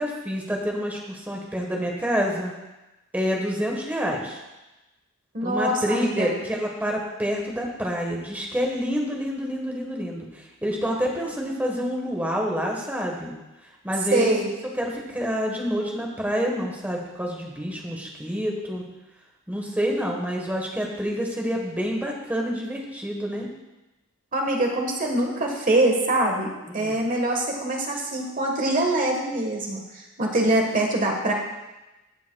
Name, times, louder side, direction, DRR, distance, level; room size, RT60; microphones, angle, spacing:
voice 1, 0.0-2.5 3.1-4.4 5.4-13.3 13.8-14.3 14.7-18.8 19.5-23.5 26.7-26.9, equal, 10° right, -1 dB, 1.2 m, -28 dB
voice 2, 5.3-6.3 14.1-14.5 24.3-26.5 26.7-31.3, right 1 dB, 40° right, 1 dB, 1.4 m, -24 dB
14.0 x 6.9 x 2.3 m, 1.0 s
head